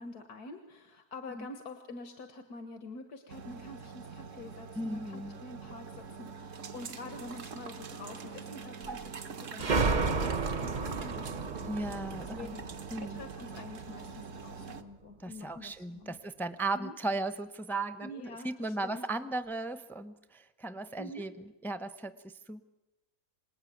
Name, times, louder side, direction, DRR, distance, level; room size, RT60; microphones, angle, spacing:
voice 1, 0.0-9.1 9.4-12.7 13.0-16.2 16.7-17.0 18.0-19.1 21.0-21.2, left 2 dB, 85° left, 7 dB, 2.1 m, -47 dB
sound 1, 3.3-14.8, right 5 dB, 55° right, 1.5 m, -44 dB
voice 2, 4.8-5.4 11.7-12.5 12.9-13.2 15.2-21.3 21.6-22.7, right 2 dB, ahead, 11 dB, 0.7 m, -36 dB
sound 2, 9.6-14.0, right 4 dB, 35° right, 1.0 m, -32 dB
26.5 x 20.0 x 9.4 m, 1.0 s
omnidirectional pair, 1.6 m